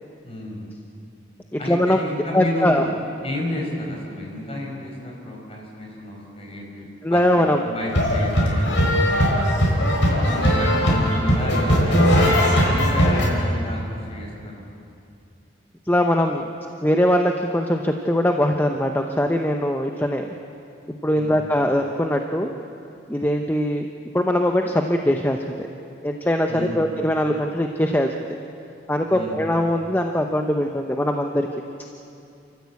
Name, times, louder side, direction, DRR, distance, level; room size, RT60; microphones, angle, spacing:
voice 1, 0.2-0.7 1.6-2.9 3.2-6.8 7.1-9.4 10.3-14.6 21.1-21.4 26.5-26.8 29.1-29.4, left 1 dB, 30° left, -1 dB, 5.1 m, -32 dB
voice 2, 1.5-2.0 2.3-2.8 7.0-7.6 15.9-16.5 16.8-20.3 21.0-22.6 23.1-23.9 24.1-25.7 26.0-28.4 28.9-31.5, equal, 10° left, 3 dB, 0.8 m, -21 dB
sound 1, 7.8-13.3, equal, 85° left, 4.9 m, -19 dB
29.0 x 14.0 x 8.3 m, 2.6 s
head